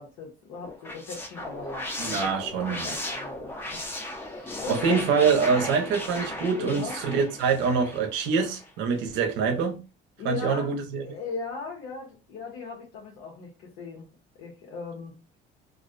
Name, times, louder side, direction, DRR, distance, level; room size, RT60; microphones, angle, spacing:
voice 1, 0.0-2.3 2.7-3.5 4.1-5.0 6.5-7.0 10.2-13.5 13.8-14.1 14.4-15.1, left 4 dB, 85° left, 0.8 m, -38 dB
sound 1, 0.6-8.7, left 1 dB, 10° left, 0.4 m, -36 dB
voice 2, 2.0-2.9 4.7-9.8 10.2-11.0, right 5 dB, 80° right, 0.6 m, -25 dB
2.4 x 2.0 x 2.4 m
cardioid pair, 160°, 19 cm